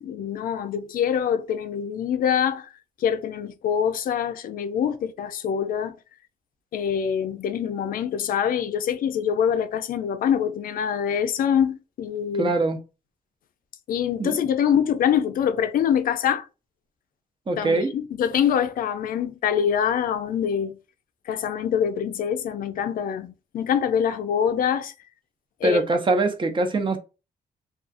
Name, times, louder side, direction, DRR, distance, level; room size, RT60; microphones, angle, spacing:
voice 1, 0.0-2.7 3.0-5.9 6.7-12.5 13.9-16.5 17.6-20.8 21.3-24.9 25.6-25.8, left 8 dB, 75° left, 0.4 m, -24 dB
voice 2, 12.4-12.8 14.2-14.4 17.5-17.9 25.6-27.0, right 2 dB, 35° right, 0.5 m, -23 dB
2.4 x 2.3 x 2.4 m
cardioid pair, 100°, 15 cm